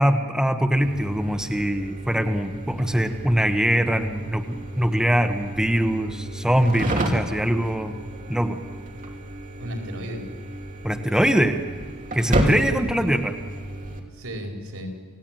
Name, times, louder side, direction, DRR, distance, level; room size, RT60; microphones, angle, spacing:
voice 1, 0.0-8.0 8.3-8.6 10.8-11.6 12.1-13.3, equal, 5° right, 5 dB, 1.2 m, -22 dB
sound 1, 0.8-14.0, right 1 dB, 35° right, 3.0 m, -31 dB
voice 2, 9.6-10.3 12.6-13.2 14.1-14.9, equal, 85° right, 2 dB, 4.9 m, -35 dB
28.5 x 17.0 x 9.2 m, 1.5 s
head